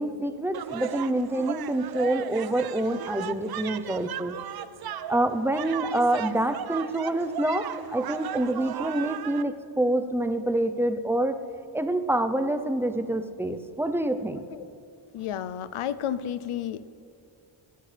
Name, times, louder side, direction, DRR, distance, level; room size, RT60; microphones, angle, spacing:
voice 1, 0.0-4.4 5.1-11.4 11.7-14.4, right 1 dB, 5° right, 8 dB, 0.6 m, -27 dB
sound 1, 0.5-9.4, right 10 dB, 50° right, 0.5 m, -36 dB
voice 2, 15.1-16.9, left 10 dB, 85° left, 15 dB, 0.7 m, -32 dB
23.5 x 11.0 x 3.4 m, 2.6 s
wide cardioid pair, 110°, 49 cm